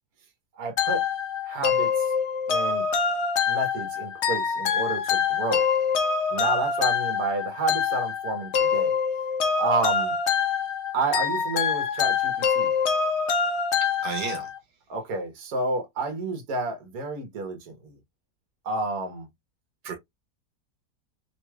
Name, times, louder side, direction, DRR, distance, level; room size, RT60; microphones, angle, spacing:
voice 1, 0.5-1.0 1.4-2.1 2.5-2.9 3.5-5.7 6.3-9.0 9.5-10.2 10.9-12.7 14.9-18.0 18.6-19.3, right 3 dB, 60° right, 1.5 m, -30 dB
sound 1, 0.8-14.6, left 6 dB, 65° left, 0.7 m, -25 dB
voice 2, 14.0-14.5 19.8-19.9, right 6 dB, 85° right, 1.5 m, -31 dB
3.4 x 3.0 x 2.2 m
omnidirectional pair, 1.8 m